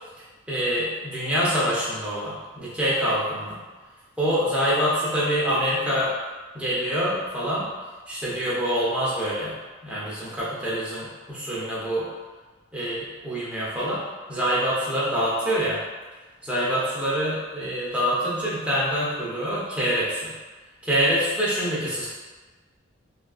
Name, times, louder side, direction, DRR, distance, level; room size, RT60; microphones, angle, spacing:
voice 1, 0.5-3.6 4.2-6.1 6.5-7.7 8.1-9.6 9.8-12.1 12.7-15.8 16.4-20.3 20.8-22.1, equal, 5° right, -8 dB, 0.7 m, -25 dB
3.3 x 2.5 x 2.3 m, 1.3 s
head